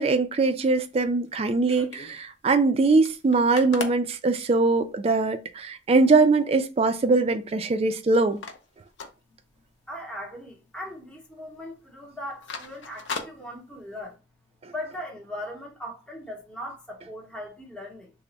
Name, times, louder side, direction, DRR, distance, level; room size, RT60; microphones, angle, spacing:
voice 1, 0.0-8.4, right 3 dB, 35° right, 0.3 m, -22 dB
sound 1, 0.8-2.2 2.6-2.7 2.9-5.0 5.6-5.7 6.0-6.4 6.8-7.9 8.1-9.9 10.2-10.4 10.7-11.2 11.5-11.7 12.1-14.1, left 4 dB, 80° left, 0.6 m, -39 dB
voice 2, 9.9-14.2 14.7-18.1, left 1 dB, 5° left, 0.7 m, -39 dB
3.3 x 2.0 x 3.8 m
head